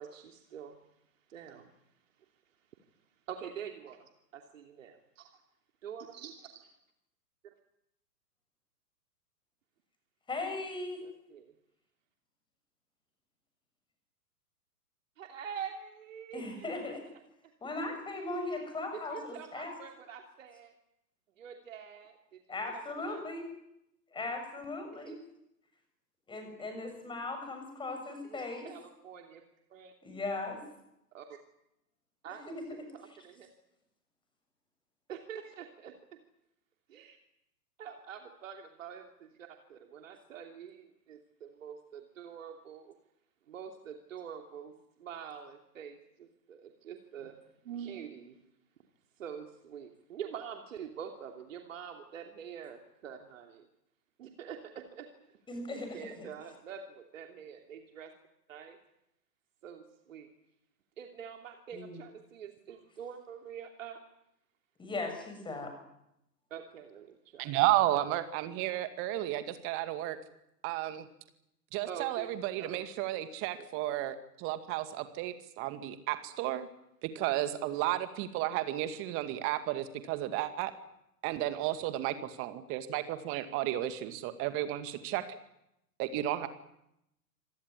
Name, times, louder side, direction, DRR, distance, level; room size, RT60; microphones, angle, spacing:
voice 1, 1.3-1.6 3.3-4.0 4.3-5.4 5.8-6.6 11.0-11.5 15.2-16.7 18.1-18.3 18.9-20.7 21.4-22.4 22.7-23.2 24.9-25.2 28.2-29.4 29.7-29.9 31.1-31.4 32.2-32.5 32.9-33.5 35.1-35.9 36.9-37.2 37.8-42.9 43.5-47.4 47.6-48.4 49.2-53.7 54.2-55.1 55.7-58.1 58.5-58.8 59.6-60.3 61.0-64.0 66.5-67.5 71.9-72.3 72.6-72.8 77.2-77.3, right 8 dB, 50° right, 4 dB, 3.0 m, -45 dB
voice 2, 10.3-11.0 16.3-17.0 17.6-19.7 22.5-23.4 24.1-25.2 26.3-28.7 30.0-30.6 32.5-32.6 55.5-56.3 61.7-62.0 64.8-65.7, left 2 dB, 10° left, 6 dB, 6.9 m, -38 dB
voice 3, 67.4-70.2 70.6-71.1 71.7-76.7 77.0-80.7 81.2-85.2 86.0-86.5, right 14 dB, 25° right, 10 dB, 2.1 m, -33 dB
26.5 x 18.0 x 9.9 m, 0.82 s
figure-of-eight pair, 115°, 48 cm